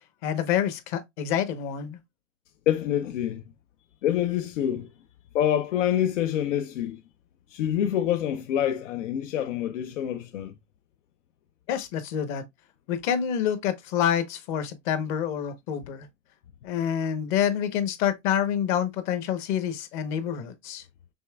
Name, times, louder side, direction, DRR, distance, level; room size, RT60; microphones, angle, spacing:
voice 1, 0.2-2.0 11.7-12.4 12.9-16.1 16.6-20.8, left 9 dB, 40° left, 0.9 m, -27 dB
voice 2, 2.7-3.4 4.0-4.9 5.3-7.0 7.5-10.5, left 10 dB, 85° left, 0.6 m, -26 dB
5.5 x 3.3 x 2.2 m
supercardioid pair, 140°, 37 cm